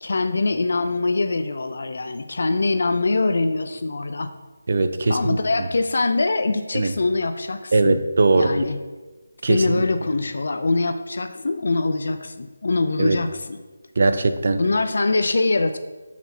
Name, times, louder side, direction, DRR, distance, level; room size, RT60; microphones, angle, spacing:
voice 1, 0.0-4.3 5.1-8.0 8.4-8.8 9.5-13.6 14.6-15.8, left 3 dB, 60° left, 8 dB, 0.5 m, -23 dB
voice 2, 4.7-5.4 6.7-6.9 7.7-8.5 9.4-9.8 13.0-13.2 14.0-14.6, right 3 dB, 50° right, 10 dB, 0.7 m, -20 dB
13.0 x 6.0 x 2.8 m, 1.3 s
figure-of-eight pair, 170°, 0 cm